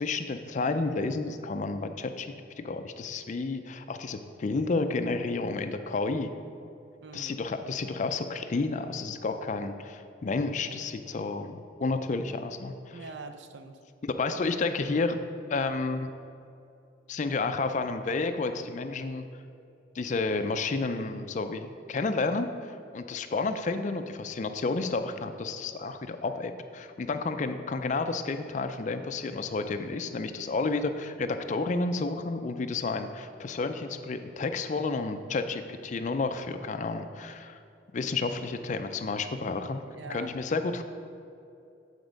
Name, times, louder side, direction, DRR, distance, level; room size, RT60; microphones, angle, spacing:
voice 1, 0.0-6.3 7.1-13.0 14.2-15.2 15.5-16.1 17.1-19.3 19.9-37.6 37.9-39.8 40.1-40.8, left 3 dB, 40° left, 8 dB, 0.4 m, -31 dB
voice 2, 7.0-7.4 12.9-13.8 39.9-40.3, right 3 dB, 70° right, 9 dB, 0.5 m, -43 dB
8.2 x 4.3 x 5.1 m, 2.6 s
head